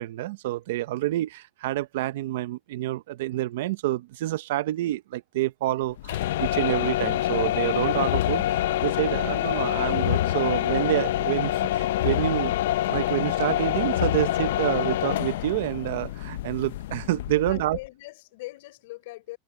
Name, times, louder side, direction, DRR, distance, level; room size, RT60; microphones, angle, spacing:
voice 1, 0.0-12.5 12.9-17.8, right 15 dB, 70° right, 0.7 m, -28 dB
sound 1, 6.0-17.9, left 13 dB, 80° left, 0.5 m, -26 dB
voice 2, 17.3-19.4, left 20 dB, 65° left, 5.8 m, -41 dB
supercardioid pair, 165°, 0 cm